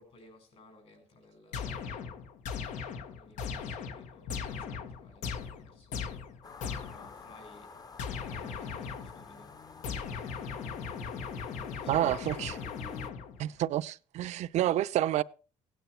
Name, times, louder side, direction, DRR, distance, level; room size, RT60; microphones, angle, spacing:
voice 1, 0.0-2.1 3.0-6.3 6.8-7.8 8.1-9.6 11.5-12.6 13.5-13.7, left 2 dB, 55° left, 6.1 m, -58 dB
sound 1, 1.5-7.2 8.0-9.3 9.8-13.5, left 6 dB, 85° left, 1.5 m, -38 dB
sound 2, 6.4-13.1, left 5 dB, 30° left, 0.9 m, -49 dB
voice 2, 11.9-12.6 13.4-15.2, right 13 dB, 70° right, 0.6 m, -29 dB
17.0 x 9.3 x 4.5 m
cardioid pair, 120°, 12 cm